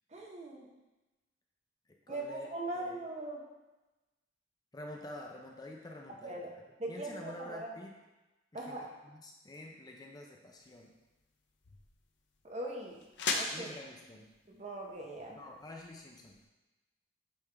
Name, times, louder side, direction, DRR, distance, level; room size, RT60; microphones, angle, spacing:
voice 1, 0.1-0.7 2.1-3.4 6.2-6.5 6.8-7.7 8.5-8.9 12.4-13.0 13.3-13.7 14.5-15.4, right 2 dB, 40° right, 0 dB, 0.9 m, -40 dB
voice 2, 2.1-2.5 2.7-3.0 4.7-6.4 6.9-7.9 8.5-10.9 13.5-14.3 15.4-16.4, left 1 dB, 20° left, 0 dB, 0.5 m, -48 dB
sound 1, 10.5-16.4, left 4 dB, 75° left, 0.7 m, -42 dB
8.4 x 3.4 x 3.4 m, 1.1 s
head